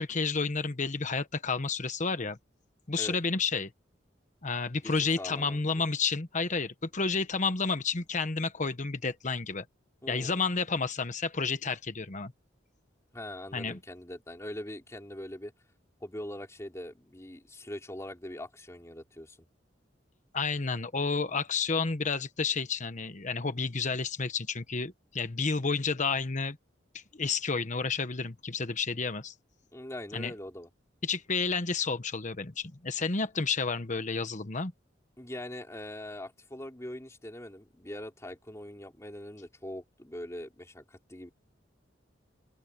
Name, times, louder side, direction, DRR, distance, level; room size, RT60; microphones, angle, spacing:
voice 1, 0.0-2.4 2.9-3.7 4.4-9.6 10.1-12.3 13.5-13.8 20.3-26.6 26.9-29.3 30.1-30.3 31.0-34.7, left 4 dB, 40° left, 1.2 m, -31 dB
voice 2, 4.8-5.8 10.0-10.4 13.1-15.5 16.0-19.5 29.7-30.7 35.2-41.3, left 1 dB, 15° left, 3.0 m, -42 dB
open air
head